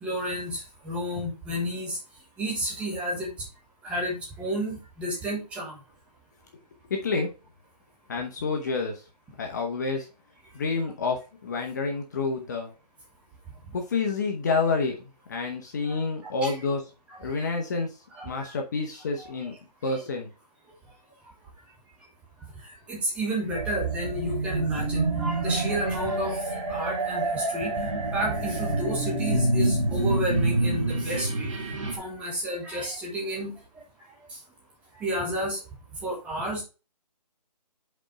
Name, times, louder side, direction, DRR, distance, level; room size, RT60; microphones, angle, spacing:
voice 1, 0.0-2.0 2.4-3.3 3.8-5.8 15.9-16.0 16.4-16.6 17.1-17.2 18.1-18.5 19.2-19.6 19.9-20.0 22.9-27.7 28.0-31.5 31.9-33.6 34.3-34.4 35.0-35.6 36.0-36.6, equal, 5° right, -3 dB, 1.1 m, -31 dB
voice 2, 6.9-7.3 8.1-9.0 9.4-10.1 10.5-12.7 13.7-16.8 17.2-17.9 18.2-19.5 19.8-20.3, left 4 dB, 25° left, 2 dB, 0.9 m, -28 dB
sound 1, 23.5-32.0, right 2 dB, 50° right, 1.7 m, -27 dB
5.3 x 4.3 x 4.6 m, 0.31 s
hypercardioid pair, 160°, 21 cm